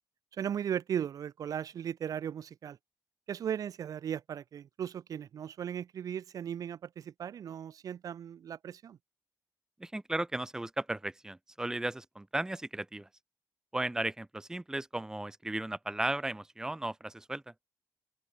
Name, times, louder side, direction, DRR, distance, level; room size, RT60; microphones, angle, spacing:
voice 1, 0.3-2.8 3.3-9.0, right 9 dB, 65° right, 1.8 m, -37 dB
voice 2, 9.8-13.1 13.7-17.4, right 1 dB, 10° right, 1.3 m, -35 dB
open air
cardioid pair, 130°, 7 cm